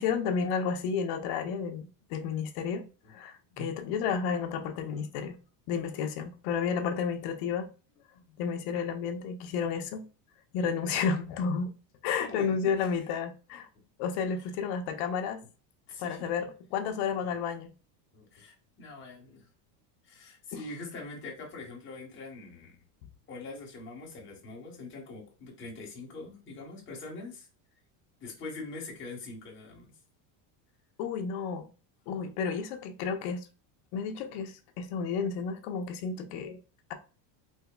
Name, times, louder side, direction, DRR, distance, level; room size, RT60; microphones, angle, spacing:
voice 1, 0.0-5.4 5.7-7.7 8.4-10.1 10.5-11.7 12.0-13.7 14.0-15.4 16.0-17.7 20.5-20.6 31.0-31.7 32.1-33.5 33.9-36.6, left 6 dB, 50° left, 0.6 m, -31 dB
voice 2, 12.2-12.9 15.9-16.3 18.1-19.5 20.0-22.8 23.3-27.5 28.2-29.9, left 3 dB, 25° left, 1.1 m, -43 dB
4.3 x 2.9 x 2.2 m
cardioid pair, 165°, 49 cm